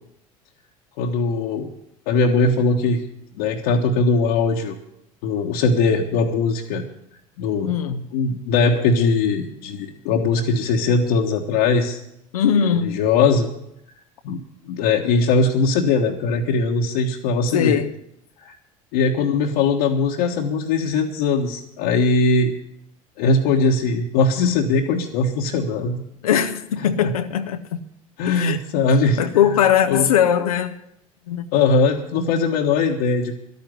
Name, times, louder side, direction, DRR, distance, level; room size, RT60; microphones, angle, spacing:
voice 1, 1.0-1.7 2.1-3.0 3.4-4.8 5.2-6.8 7.4-7.8 8.1-12.0 12.8-13.5 14.2-17.8 18.4-18.5 18.9-22.5 23.2-26.0 28.2-29.2 29.9-30.0 31.5-33.4, left 4 dB, 70° left, 1.4 m, -20 dB
voice 2, 7.6-8.1 12.3-13.0 17.5-18.0 26.2-27.8 28.2-28.6 29.0-30.8 31.3-31.5, left 9 dB, 85° left, 0.8 m, -20 dB
11.5 x 9.5 x 9.6 m
hypercardioid pair, 75°, 18 cm